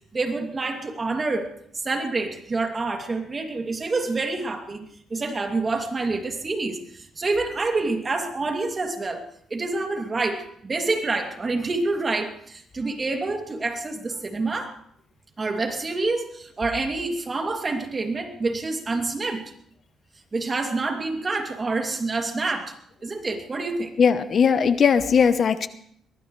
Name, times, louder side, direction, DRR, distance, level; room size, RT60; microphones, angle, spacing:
voice 1, 0.1-14.8 15.4-19.5 20.3-22.7 23.0-23.9, right 3 dB, 30° right, 4 dB, 2.6 m, -27 dB
voice 2, 24.0-25.7, left 6 dB, 50° left, 12 dB, 0.9 m, -19 dB
23.0 x 19.0 x 3.3 m, 0.66 s
cardioid pair, 90°, 0 cm